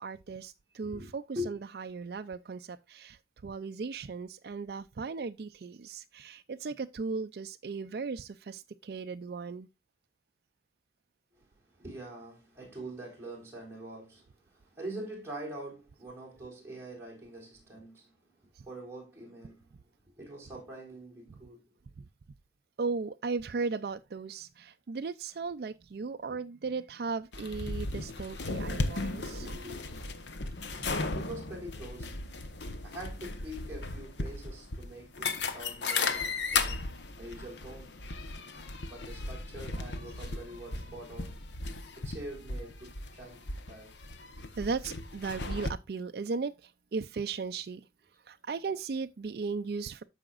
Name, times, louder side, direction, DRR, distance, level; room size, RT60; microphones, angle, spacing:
voice 1, 0.0-9.7 22.8-29.5 30.8-30.9 44.6-47.9 48.3-50.0, right 4 dB, 60° right, 0.4 m, -37 dB
voice 2, 0.9-1.6 11.4-18.3 18.6-19.8 20.2-21.7 26.3-26.4 29.4-30.3 31.1-32.2 32.8-37.9 38.8-41.4 42.0-44.0, right 1 dB, 15° right, 4.0 m, -44 dB
sound 1, 27.3-45.7, left 3 dB, 90° left, 1.0 m, -36 dB
13.5 x 4.9 x 2.4 m
head